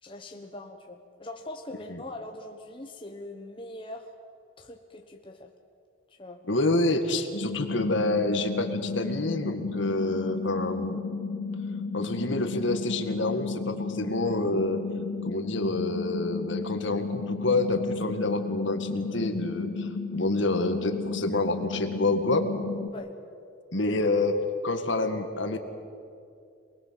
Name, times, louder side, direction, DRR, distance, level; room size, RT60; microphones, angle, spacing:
voice 1, 0.0-4.1 4.6-5.5 6.1-6.4 22.9-23.1, left 1 dB, 25° left, 2 dB, 1.2 m, -42 dB
voice 2, 6.5-11.0 11.9-14.8 15.2-22.5 23.7-25.6, left 2 dB, 60° left, 6 dB, 2.0 m, -28 dB
sound 1, 7.3-22.9, left 4 dB, 85° left, 2.5 m, -33 dB
27.5 x 20.0 x 7.7 m, 2.5 s
head